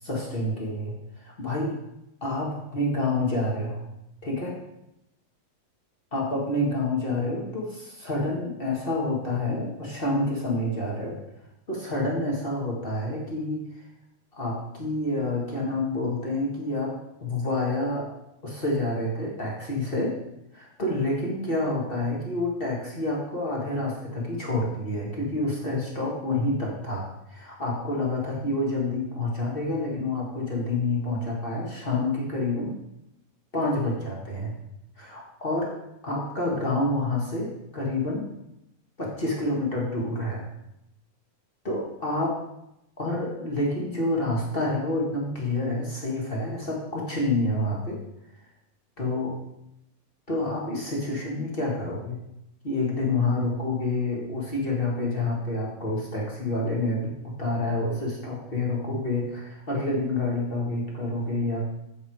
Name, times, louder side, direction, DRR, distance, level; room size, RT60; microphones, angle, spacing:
voice 1, 0.0-1.8 2.2-3.8 4.2-4.5 6.1-11.1 11.7-13.6 14.3-16.9 17.2-18.1 18.4-20.1 20.5-32.7 33.5-34.6 35.0-35.7 36.0-38.2 39.0-40.5 41.6-42.3 43.0-48.0 49.0-49.4 50.3-52.2 52.6-61.6, left 2 dB, 30° left, -3 dB, 1.0 m, -28 dB
7.9 x 7.3 x 4.6 m, 0.84 s
omnidirectional pair, 3.6 m